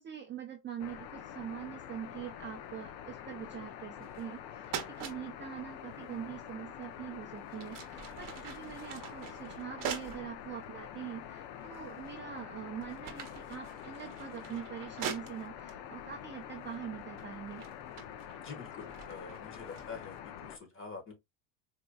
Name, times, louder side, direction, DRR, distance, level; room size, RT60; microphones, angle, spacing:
voice 1, 0.0-17.7, right 9 dB, 25° right, 0.6 m, -43 dB
sound 1, 0.8-20.6, left 9 dB, 65° left, 0.7 m, -46 dB
sound 2, 4.0-4.4 4.7-5.2 6.8-7.0 7.5-10.3 10.9-11.0 11.7-12.2 12.6-15.7 16.6-16.9 17.2-20.2, right 8 dB, 45° right, 0.9 m, -43 dB
voice 2, 18.4-21.1, left 5 dB, 25° left, 1.4 m, -46 dB
4.4 x 2.8 x 2.3 m
cardioid pair, 130°, 46 cm